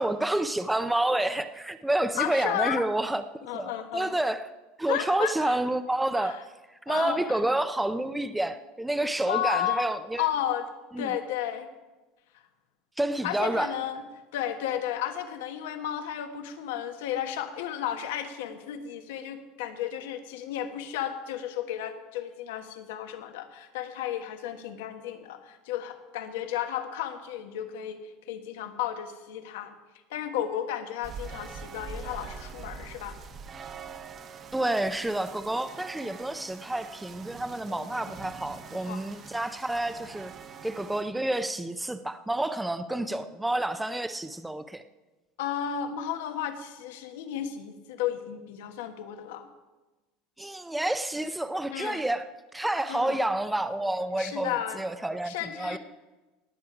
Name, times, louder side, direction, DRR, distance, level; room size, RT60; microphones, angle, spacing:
voice 1, 0.0-3.2 3.5-4.5 4.8-6.4 6.7-10.3 10.9-11.1 13.0-13.8 34.5-40.3 40.6-44.8 50.4-55.8, right 1 dB, 5° right, 0.5 m, -29 dB
voice 2, 2.1-2.8 3.4-4.2 4.9-5.6 6.2-6.4 6.9-7.2 9.2-9.8 10.2-10.7 11.0-11.7 13.2-14.0 14.3-28.0 28.3-29.7 30.1-33.2 37.7-38.1 38.9-39.0 42.9-43.3 45.4-49.5 51.7-52.0 52.9-53.2 54.2-54.8 55.2-55.8, left 10 dB, 85° left, 1.3 m, -33 dB
sound 1, 31.0-41.0, right 5 dB, 30° right, 0.9 m, -44 dB
19.0 x 8.4 x 4.9 m
supercardioid pair, 135°, 0 cm